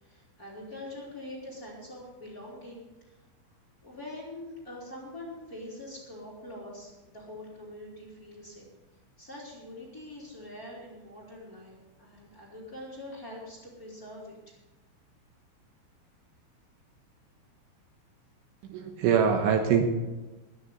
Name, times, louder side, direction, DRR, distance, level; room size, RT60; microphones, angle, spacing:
voice 1, 0.0-3.2 3.8-8.6 9.2-14.5, left 1 dB, 20° left, -5 dB, 3.4 m, -44 dB
voice 2, 18.6-19.8, right 7 dB, 75° right, 4 dB, 3.4 m, -24 dB
21.0 x 9.6 x 4.1 m, 1.1 s
omnidirectional pair, 5.9 m